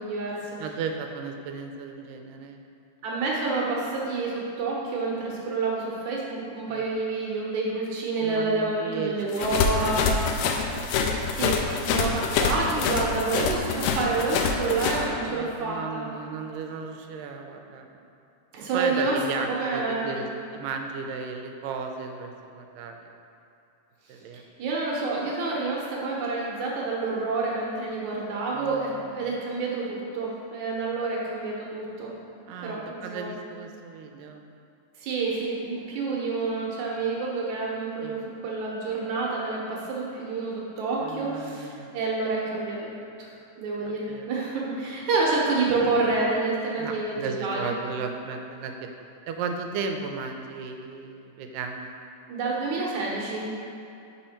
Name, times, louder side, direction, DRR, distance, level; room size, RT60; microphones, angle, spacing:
voice 1, 0.0-0.5 3.0-10.1 11.2-16.1 18.5-20.2 24.6-32.1 32.6-33.4 35.0-42.9 43.2-43.3 43.6-47.7 52.3-53.5, right 3 dB, 70° right, -3 dB, 2.1 m, -28 dB
voice 2, 0.6-2.6 6.7-6.9 8.2-10.7 11.1-11.3 12.9-13.3 15.2-18.0 18.7-20.3 20.5-23.1 24.1-24.4 28.5-29.4 32.5-34.4 38.0-38.2 41.0-41.9 43.8-44.3 46.8-48.9 49.3-51.9, right 5 dB, 90° right, 4 dB, 2.2 m, -35 dB
sound 1, 9.3-15.0, left 5 dB, 85° left, 2.2 m, -25 dB
5.7 x 5.5 x 4.2 m, 2.6 s
omnidirectional pair, 3.8 m